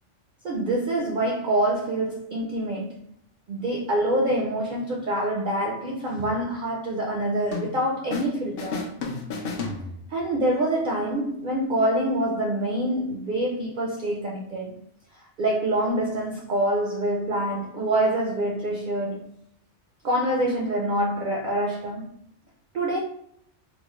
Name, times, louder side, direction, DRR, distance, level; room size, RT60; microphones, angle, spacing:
voice 1, 0.4-3.0 3.5-8.8 10.1-14.7 15.1-19.2 20.0-22.0 22.7-23.0, right 1 dB, 60° right, 0.5 m, -26 dB
sound 1, 7.5-8.3 8.6-10.3, left 4 dB, 60° left, 0.7 m, -33 dB
3.0 x 2.1 x 3.0 m
omnidirectional pair, 1.2 m